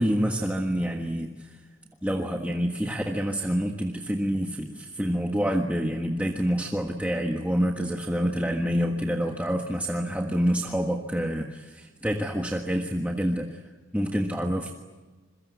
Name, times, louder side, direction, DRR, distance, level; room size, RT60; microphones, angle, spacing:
voice 1, 0.0-1.6 2.0-13.6 13.9-14.7, equal, 5° right, 2 dB, 1.5 m, -27 dB
27.0 x 22.5 x 8.2 m, 1.3 s
head